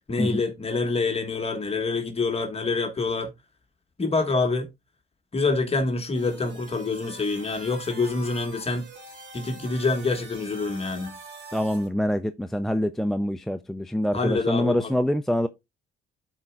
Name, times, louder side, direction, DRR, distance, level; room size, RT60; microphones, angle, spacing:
voice 1, 0.1-3.3 4.0-4.7 5.3-8.8 9.3-11.2 14.1-14.9, left 3 dB, 30° left, 1.6 m, -26 dB
sound 1, 6.1-11.9, right 2 dB, 65° right, 2.9 m, -44 dB
voice 2, 11.5-15.5, equal, ahead, 0.4 m, -25 dB
12.5 x 4.5 x 2.4 m
cardioid pair, 90°, 20 cm